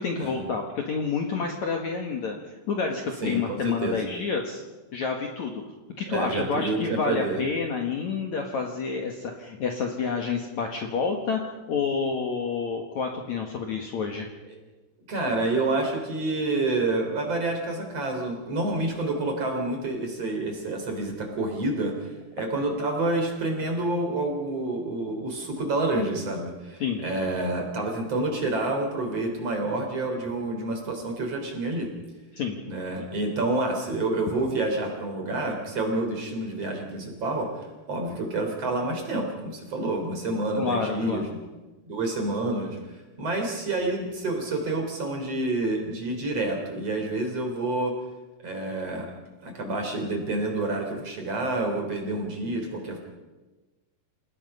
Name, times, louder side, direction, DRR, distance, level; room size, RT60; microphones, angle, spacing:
voice 1, 0.0-4.6 4.9-5.6 6.0-14.3 26.8-27.0 32.3-32.6 40.6-41.3, left 5 dB, 55° left, 2 dB, 2.3 m, -29 dB
voice 2, 3.2-4.0 6.1-7.4 15.1-31.9 32.7-37.5 37.9-41.2 41.9-42.8 43.2-47.9 48.4-49.1 49.4-53.0, right 2 dB, 40° right, 3 dB, 4.2 m, -28 dB
28.5 x 18.0 x 5.5 m, 1.2 s
omnidirectional pair, 4.9 m